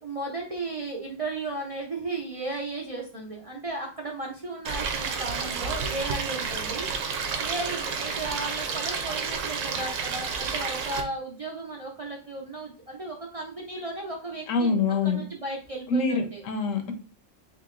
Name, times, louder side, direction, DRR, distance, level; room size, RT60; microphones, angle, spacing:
voice 1, 0.0-6.9 7.2-14.8 15.0-16.4, right 2 dB, 40° right, -1 dB, 0.5 m, -35 dB
Stream, 4.6-11.0, right 5 dB, 75° right, 1.0 m, -30 dB
voice 2, 14.5-15.2 15.9-16.9, left 4 dB, 75° left, 6 dB, 1.1 m, -25 dB
3.3 x 2.9 x 3.7 m, 0.38 s
omnidirectional pair, 1.4 m